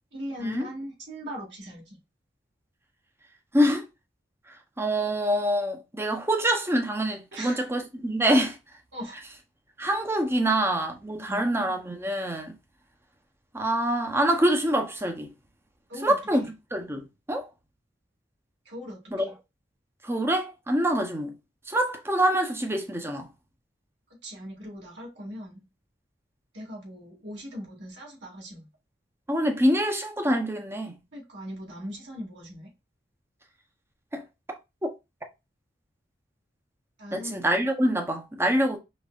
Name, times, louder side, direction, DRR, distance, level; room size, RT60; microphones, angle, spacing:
voice 1, 0.1-2.0 7.3-7.7 8.9-9.2 11.2-11.4 15.9-16.5 18.6-19.3 24.2-25.6 26.5-28.7 31.1-32.7 37.0-37.5, equal, 70° right, 2.3 m, -39 dB
voice 2, 3.5-3.9 4.5-8.6 9.8-12.6 13.5-15.3 16.0-16.4 16.7-17.5 19.1-19.2 20.0-21.3 21.7-23.3 29.3-31.0 34.1-34.2 34.8-34.9 37.1-38.8, right 1 dB, 15° right, 0.9 m, -25 dB
5.3 x 3.3 x 2.5 m
head